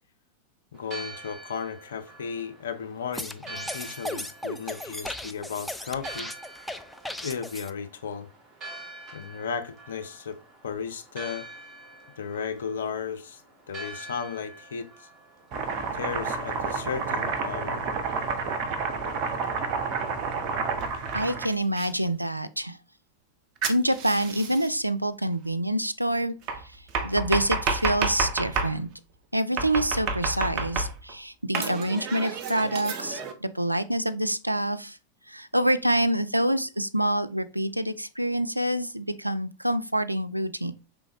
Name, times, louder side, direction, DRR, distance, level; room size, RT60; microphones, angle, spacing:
voice 1, 0.7-6.3 7.2-8.3 9.1-10.4 10.6-11.4 12.2-13.4 13.7-15.1 15.9-17.8, left 6 dB, 65° left, 0.6 m, -35 dB
Church bell, 0.7-17.4, right 2 dB, 25° right, 1.4 m, -46 dB
sound 1, 3.1-7.7, left 1 dB, ahead, 0.4 m, -36 dB
Domestic sounds home sounds, 15.5-21.9 23.6-24.7 26.5-28.8 29.6-31.1 31.5-33.3, right 4 dB, 40° right, 0.7 m, -30 dB
voice 2, 21.1-22.8 23.7-26.3 27.0-28.9 29.3-35.0 35.3-40.7, right 1 dB, 85° right, 0.3 m, -26 dB
5.1 x 3.5 x 3.0 m
figure-of-eight pair, 90°, 0 cm